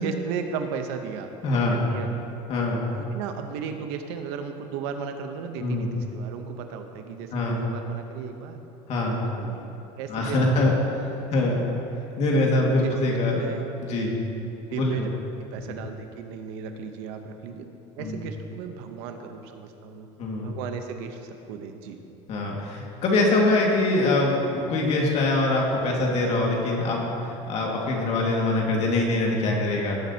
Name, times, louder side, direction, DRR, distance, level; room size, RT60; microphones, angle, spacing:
voice 1, 0.0-1.3 1.7-2.3 2.8-8.6 9.1-10.8 11.1-11.3 12.5-12.9 13.2-13.7 14.1-14.4 14.7-15.1 15.5-17.6 18.0-20.1 20.4-22.0, right 6 dB, 85° right, 6 dB, 0.9 m, -35 dB
voice 2, 1.4-1.8 2.5-2.8 5.6-5.9 7.3-7.6 8.9-9.2 10.1-10.7 11.3-11.7 12.2-13.4 13.8-14.1 14.8-15.1 18.0-18.2 20.2-20.5 22.3-30.0, left 2 dB, 50° left, -1 dB, 2.0 m, -23 dB
17.0 x 7.4 x 2.9 m, 2.9 s
cardioid pair, 120°, 14 cm